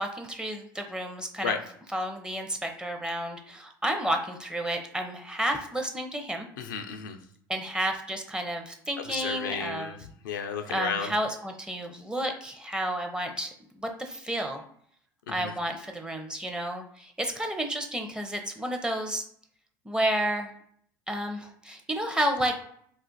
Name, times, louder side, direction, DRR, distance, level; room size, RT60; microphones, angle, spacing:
voice 1, 0.0-1.6 1.9-6.5 7.5-10.0 10.7-13.5 13.8-14.6 15.3-19.2 19.8-20.5 21.1-22.5, right 1 dB, 5° right, 3 dB, 0.6 m, -31 dB
voice 2, 6.6-7.2 9.1-9.9 10.2-11.1 15.3-15.5, left 6 dB, 85° left, 5 dB, 0.4 m, -32 dB
2.4 x 2.4 x 3.8 m, 0.64 s
hypercardioid pair, 75°, 10 cm